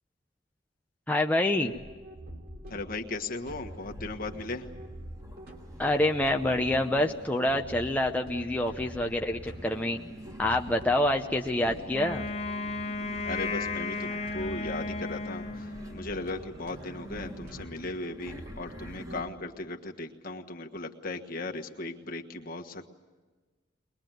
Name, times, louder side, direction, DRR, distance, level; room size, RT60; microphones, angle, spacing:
voice 1, 1.1-1.7 5.8-10.0 10.4-12.3, left 1 dB, 10° left, 2 dB, 0.8 m, -27 dB
sound 1, 1.7-19.3, equal, 55° right, 2.9 m, -46 dB
voice 2, 2.7-4.7 13.2-22.9, left 2 dB, 50° left, 4 dB, 1.5 m, -37 dB
sound 2, 3.5-19.2, equal, 20° right, 1.9 m, -49 dB
Wind instrument woodwind instrument, 11.9-16.1, left 3 dB, 35° left, 2.0 m, -34 dB
22.5 x 21.0 x 9.2 m, 1.3 s
head